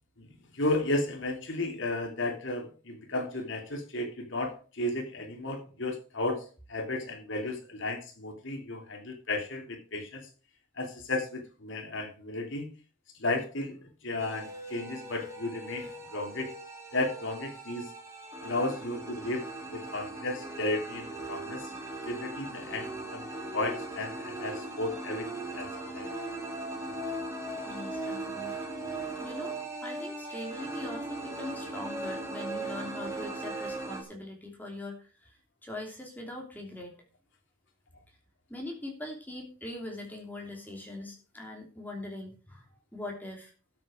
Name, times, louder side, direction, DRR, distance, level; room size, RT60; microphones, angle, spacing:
voice 1, 0.2-6.4 6.7-10.3 10.8-12.7 13.2-16.5 16.9-17.8 18.4-21.7 22.1-23.3 23.5-26.1, left 2 dB, 60° left, 3 dB, 3.0 m, -34 dB
sound 1, 14.2-34.0, right 2 dB, 15° right, 2.8 m, -39 dB
voice 2, 27.7-28.6 29.2-37.0 38.5-43.5, left 2 dB, 10° left, 0 dB, 3.0 m, -42 dB
12.5 x 7.8 x 5.0 m, 0.37 s
head